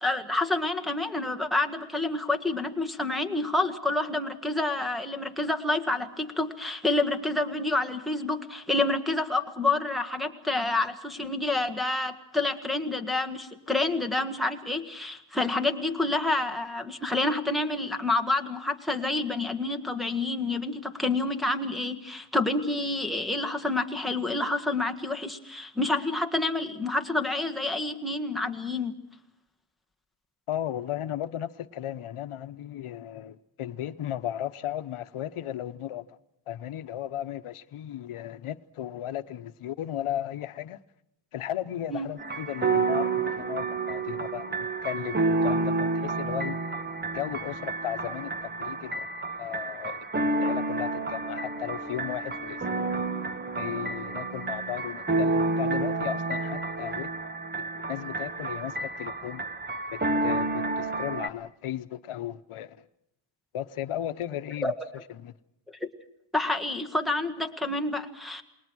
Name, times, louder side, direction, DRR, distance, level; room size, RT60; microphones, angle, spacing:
voice 1, 0.0-28.9 41.9-42.1 64.6-64.7 65.7-65.9 66.3-68.4, left 2 dB, ahead, 1.6 m, -28 dB
voice 2, 30.5-36.2 36.5-40.8 41.3-46.6 47.1-49.1 49.4-52.7 52.9-53.0 53.6-57.1 57.9-59.4 59.9-62.8 63.5-64.7 65.2-65.3, left 11 dB, 85° left, 1.0 m, -35 dB
sound 1, 42.2-61.3, right 3 dB, 20° right, 1.1 m, -30 dB
28.5 x 21.0 x 6.2 m
wide cardioid pair, 175°, 49 cm